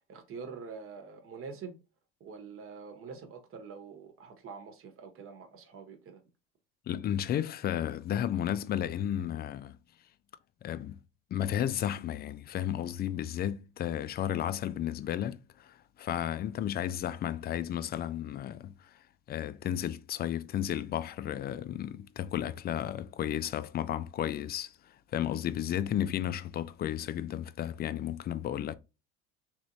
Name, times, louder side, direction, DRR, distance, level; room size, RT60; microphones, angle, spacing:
voice 1, 0.1-1.8 2.2-6.2, right 5 dB, 50° right, 1.1 m, -45 dB
voice 2, 6.9-9.8 10.6-11.0 11.3-28.7, left 10 dB, 35° left, 0.4 m, -33 dB
3.2 x 3.0 x 2.7 m
supercardioid pair, 90°, 29 cm